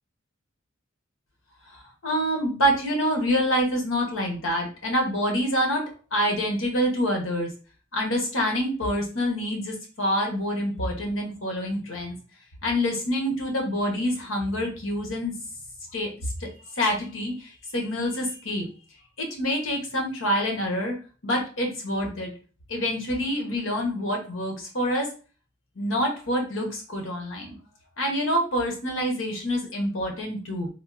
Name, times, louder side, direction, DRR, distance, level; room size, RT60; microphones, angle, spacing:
voice 1, 1.7-5.8 6.1-7.5 7.9-12.2 12.6-15.4 15.9-16.1 16.4-18.7 19.2-20.9 21.2-22.3 22.7-25.1 25.8-27.5 28.0-30.7, equal, 80° left, 1 dB, 1.0 m, -26 dB
3.5 x 2.2 x 2.5 m, 0.36 s
head